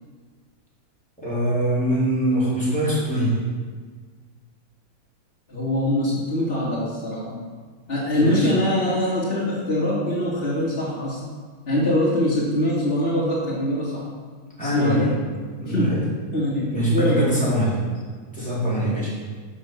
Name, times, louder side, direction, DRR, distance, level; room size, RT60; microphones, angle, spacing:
voice 1, 1.2-3.5 8.1-8.5 14.6-15.1 15.6-16.0 16.7-17.8 18.3-19.1, right 1 dB, 5° left, -8 dB, 4.0 m, -23 dB
voice 2, 5.5-7.5 7.9-11.2 11.6-14.0 14.6-15.1 15.7-16.0 16.3-17.4, left 1 dB, 35° left, -9 dB, 2.7 m, -23 dB
11.0 x 6.0 x 7.1 m, 1.5 s
omnidirectional pair, 1.7 m